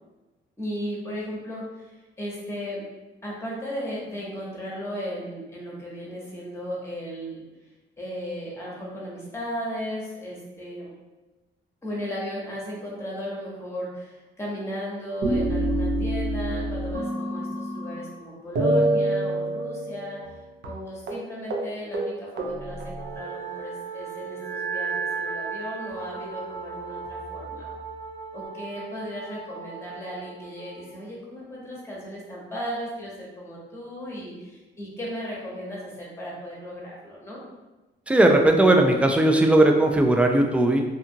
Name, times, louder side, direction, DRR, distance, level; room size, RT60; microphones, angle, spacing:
voice 1, 0.6-2.8 3.2-7.4 8.0-10.9 11.8-20.2 20.6-27.7 28.3-37.4, equal, 15° left, -4 dB, 1.0 m, -36 dB
sound 1, 15.2-18.2 18.6-20.4 20.6-20.8 21.1-21.2 21.5-21.7 21.9-23.7 24.4-26.0 26.7-27.6, right 1 dB, 60° right, 0.6 m, -28 dB
Wind instrument woodwind instrument, 22.9-30.9, right 5 dB, 80° left, 0.7 m, -38 dB
voice 2, 38.1-40.8, right 1 dB, 5° right, 3 dB, 0.3 m, -18 dB
2.7 x 2.4 x 2.7 m, 1.1 s
cardioid pair, 90°, 20 cm